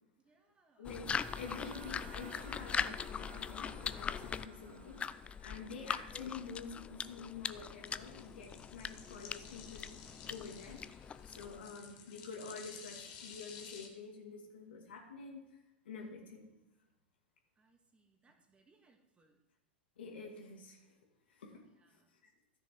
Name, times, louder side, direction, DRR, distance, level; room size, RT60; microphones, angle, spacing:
voice 1, 0.2-0.9 17.6-19.4 21.5-22.1, right 3 dB, 20° right, 3 dB, 1.9 m, -71 dB
voice 2, 0.8-10.0 10.3-10.8 11.2-15.4 15.8-16.5 20.0-20.9 21.3-21.6 21.9-22.3, left 5 dB, 70° left, 1 dB, 2.4 m, -48 dB
sound 1, 0.8-11.7, left 7 dB, 20° left, 0.4 m, -41 dB
sound 2, 1.1-5.7, right 10 dB, 65° right, 0.7 m, -57 dB
sound 3, 4.9-13.9, left 7 dB, 50° left, 1.7 m, -54 dB
14.0 x 6.5 x 4.6 m, 0.94 s
figure-of-eight pair, 90°, 6 cm